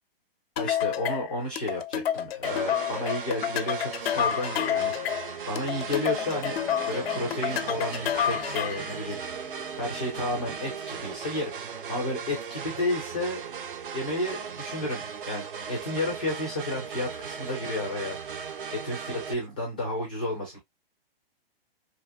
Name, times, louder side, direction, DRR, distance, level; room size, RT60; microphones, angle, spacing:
sound 1, 0.6-8.9, left 10 dB, 85° left, 0.5 m, -29 dB
voice 1, 0.6-5.2 5.5-6.6 6.9-9.2 9.8-11.5 11.9-13.4 13.9-18.2 18.7-20.6, left 1 dB, 10° left, 0.3 m, -32 dB
sound 2, 2.4-19.3, right 6 dB, 60° right, 0.7 m, -37 dB
sound 3, 5.9-11.0, right 5 dB, 80° right, 1.0 m, -45 dB
2.8 x 2.7 x 2.3 m
hypercardioid pair, 165°, 30 cm